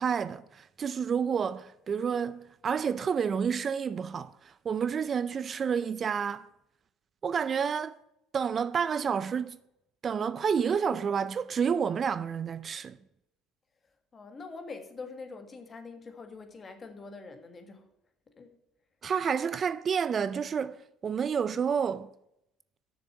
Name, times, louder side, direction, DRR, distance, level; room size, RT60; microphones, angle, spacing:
voice 1, 0.0-6.5 7.2-8.0 8.3-9.6 10.0-13.0 19.0-20.8 21.0-22.1, right 7 dB, 40° right, 0.4 m, -29 dB
voice 2, 14.1-17.9 18.4-18.5, left 4 dB, 30° left, 1.6 m, -44 dB
6.8 x 6.6 x 7.7 m
supercardioid pair, 80°, 0 cm